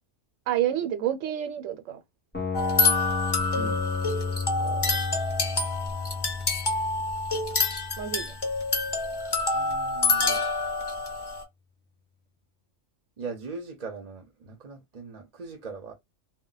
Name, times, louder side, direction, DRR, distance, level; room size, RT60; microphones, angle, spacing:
voice 1, 0.5-2.0 4.6-5.0 8.0-8.3, right 11 dB, 85° right, 1.0 m, -29 dB
sound 1, 2.3-8.4, left 5 dB, 10° left, 0.9 m, -33 dB
sound 2, 2.5-11.4, left 3 dB, 35° left, 0.4 m, -27 dB
voice 2, 3.5-3.9 8.1-8.2 9.5-10.4 13.2-15.9, right 4 dB, 45° right, 0.6 m, -40 dB
2.1 x 2.1 x 3.8 m
omnidirectional pair, 1.3 m